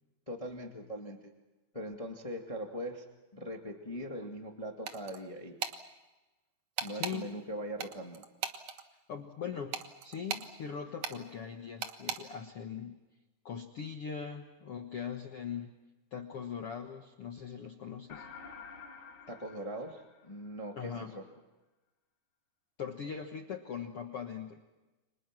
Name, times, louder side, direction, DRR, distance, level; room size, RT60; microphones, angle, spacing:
voice 1, 0.3-1.3 1.7-3.0 3.3-5.6 6.8-8.2 19.3-21.2, equal, 20° left, 2 dB, 1.0 m, -41 dB
sound 1, 4.9-5.2 5.6-5.8 6.8-7.2 7.8-8.8 9.7-10.5 11.0-11.2 11.8-12.2, right 7 dB, 60° right, 1.7 m, -36 dB
voice 2, 6.9-7.3 9.1-9.8 10.0-13.0 13.4-15.8 16.1-18.3 20.8-21.2 22.8-24.6, left 7 dB, 70° left, 4 dB, 1.4 m, -41 dB
sound 2, 18.1-20.7, left 5 dB, 45° left, 1.6 m, -50 dB
30.0 x 25.5 x 6.1 m, 1.1 s
omnidirectional pair, 4.7 m